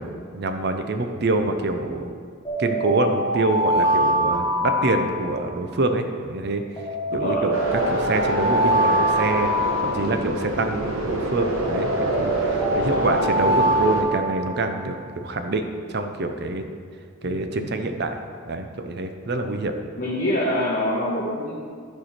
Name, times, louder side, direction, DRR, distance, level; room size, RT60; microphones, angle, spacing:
voice 1, 0.0-2.2 2.6-6.6 7.1-16.6 17.2-18.2 18.5-19.7, right 2 dB, 50° right, 6 dB, 0.6 m, -26 dB
sound 1, 2.4-5.6 6.8-10.5 11.6-14.9, right 1 dB, 15° left, 1.2 m, -24 dB
voice 2, 7.1-7.5 12.8-13.2 20.0-21.6, left 1 dB, 40° left, -8 dB, 1.3 m, -25 dB
sound 2, 7.5-14.0, right 1 dB, 70° right, 1.1 m, -27 dB
12.5 x 4.7 x 4.4 m, 2.1 s
head